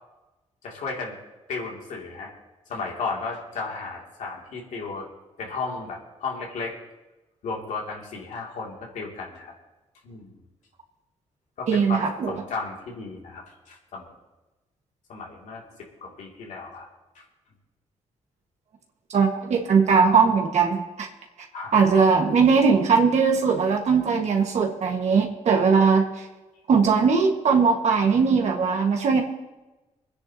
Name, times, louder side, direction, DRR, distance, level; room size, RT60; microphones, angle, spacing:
voice 1, 0.6-1.1 1.5-2.3 2.7-5.1 5.4-6.8 7.4-9.5 10.0-10.3 11.6-12.0 12.3-14.1 15.1-15.6 16.0-16.9 17.1-17.2 21.5-21.7, left 4 dB, 80° left, -1 dB, 2.7 m, -34 dB
voice 2, 11.7-12.3 19.1-21.1 21.7-26.0 26.7-29.2, right 5 dB, 65° right, 1 dB, 1.7 m, -20 dB
25.5 x 10.0 x 2.9 m, 1.1 s
cardioid pair, 95°, 12 cm